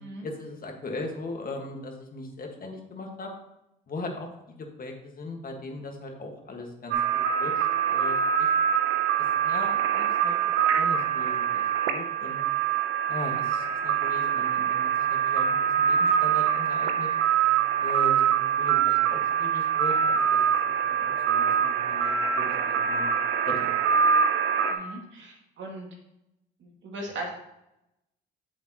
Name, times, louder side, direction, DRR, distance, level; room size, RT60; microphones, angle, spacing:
voice 1, 0.2-3.3 3.9-8.5 9.4-12.4 13.1-17.1 17.8-23.1 23.4-23.7, left 2 dB, 45° left, 2 dB, 1.7 m, -39 dB
sound 1, 6.9-24.7, right 8 dB, 85° right, 0.8 m, -24 dB
voice 2, 24.7-25.9 26.6-27.3, right 2 dB, 60° right, 0 dB, 2.3 m, -38 dB
7.8 x 7.1 x 3.0 m, 0.86 s
supercardioid pair, 80°, 21 cm